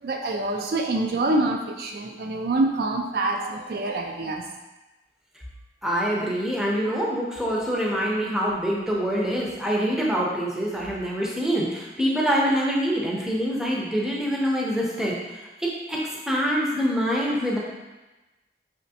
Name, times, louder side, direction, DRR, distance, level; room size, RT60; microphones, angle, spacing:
voice 1, 0.0-4.4, right 2 dB, 55° right, 2 dB, 0.3 m, -26 dB
voice 2, 5.8-16.0 16.3-17.6, equal, 5° right, -4 dB, 0.5 m, -25 dB
5.2 x 3.0 x 2.7 m, 1.1 s
head